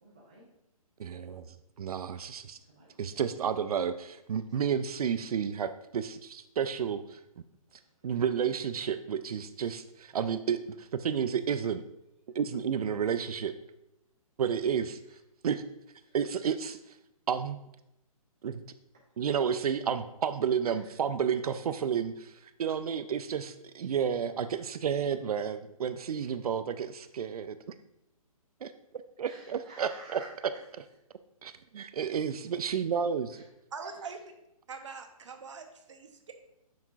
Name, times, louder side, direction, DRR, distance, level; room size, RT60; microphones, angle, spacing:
voice 1, 0.0-0.5 2.5-3.3 4.5-4.7 7.7-8.2 12.3-12.4 14.7-15.2 16.1-16.2 20.6-20.8 22.7-22.8 29.2-30.3 33.3-33.4 33.8-34.1, right 2 dB, 10° right, -5 dB, 0.3 m, -52 dB
voice 2, 1.0-2.6 3.0-7.2 8.0-11.8 12.3-13.6 14.4-15.0 15.4-15.6 16.1-16.8 17.3-17.6 18.4-18.6 19.2-27.6 28.6-28.7 29.2-30.2 31.4-33.4, right 7 dB, 80° right, 11 dB, 0.4 m, -31 dB
voice 3, 33.7-34.2 34.7-36.3, right 5 dB, 55° right, 6 dB, 0.8 m, -43 dB
7.1 x 5.9 x 2.4 m, 0.85 s
hypercardioid pair, 175°, 19 cm